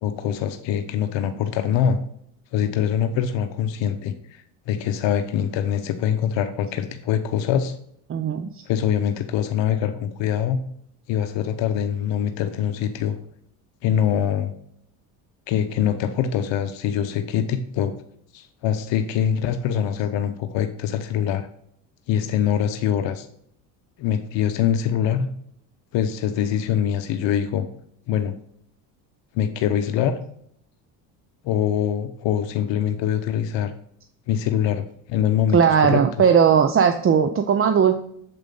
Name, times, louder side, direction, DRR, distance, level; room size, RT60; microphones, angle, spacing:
voice 1, 0.0-2.0 2.5-7.7 8.7-10.6 11.1-13.2 13.8-14.5 15.5-17.9 18.3-21.5 22.1-23.3 24.0-25.3 25.9-27.7 28.1-28.3 29.3-30.2 31.4-33.7 34.3-36.0, left 9 dB, 65° left, 8 dB, 0.8 m, -24 dB
voice 2, 8.1-8.6 35.5-38.0, right 7 dB, 30° right, 8 dB, 0.6 m, -18 dB
7.6 x 5.0 x 3.9 m, 0.68 s
supercardioid pair, 75°, 49 cm